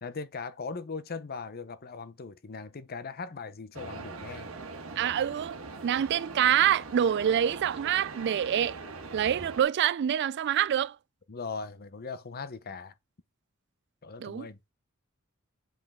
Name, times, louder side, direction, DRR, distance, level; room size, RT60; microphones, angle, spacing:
voice 1, 0.0-4.5 11.3-12.9 14.0-14.6, left 4 dB, 45° left, 0.7 m, -39 dB
sound 1, 3.7-9.6, right 3 dB, 80° right, 1.5 m, -42 dB
voice 2, 5.0-8.8 9.1-11.0 14.2-14.5, right 10 dB, 55° right, 0.3 m, -26 dB
7.6 x 5.3 x 3.6 m
head